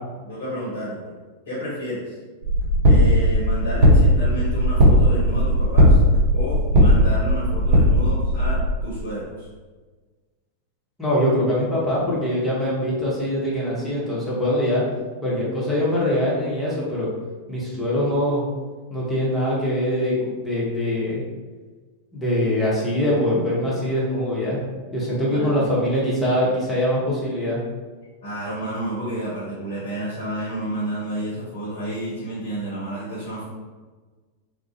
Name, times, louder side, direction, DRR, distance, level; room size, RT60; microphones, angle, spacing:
voice 1, 0.2-1.1 1.5-2.1 2.8-6.0 6.3-9.5 25.2-25.9 28.2-33.5, right 1 dB, 55° left, -6 dB, 0.7 m, -30 dB
sound 1, 2.4-8.6, equal, 50° right, 0.7 m, -17 dB
voice 2, 11.0-14.8 15.2-17.1 17.5-18.4 18.9-21.2 22.1-24.6 24.9-27.6, left 1 dB, 10° left, -7 dB, 0.9 m, -23 dB
2.4 x 2.0 x 2.6 m, 1.4 s
figure-of-eight pair, 90°, 0 cm